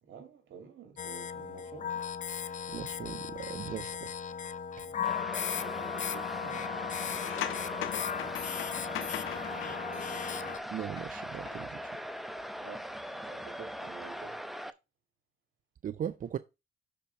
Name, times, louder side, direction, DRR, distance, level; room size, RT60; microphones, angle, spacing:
voice 1, 0.0-2.1 4.8-8.4 8.7-10.6 12.6-12.9 13.2-14.4, right 6 dB, 75° right, 2.2 m, -51 dB
sound 1, 1.0-10.6, left 8 dB, 40° left, 0.5 m, -36 dB
voice 2, 2.7-4.1 10.7-12.0 15.8-16.4, right 9 dB, 45° right, 0.4 m, -38 dB
sound 2, 5.0-14.7, equal, ahead, 0.7 m, -40 dB
sound 3, 7.2-11.1 11.3-11.5, left 12 dB, 85° left, 0.8 m, -40 dB
6.6 x 4.5 x 5.6 m
cardioid pair, 90°, 20 cm